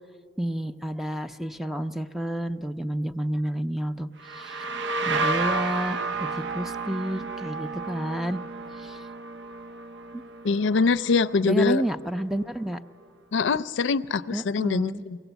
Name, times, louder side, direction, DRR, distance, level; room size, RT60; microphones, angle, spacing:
voice 1, 0.4-4.7 5.1-8.4 8.8-9.0 10.1-10.2 11.4-12.8 14.3-15.1, right 1 dB, ahead, 9 dB, 0.4 m, -30 dB
sound 1, 4.2-11.8, right 3 dB, 65° right, 0.7 m, -32 dB
voice 2, 10.4-11.8 13.3-15.2, left 4 dB, 70° left, 14 dB, 0.4 m, -23 dB
23.0 x 17.5 x 8.0 m, 2.4 s
head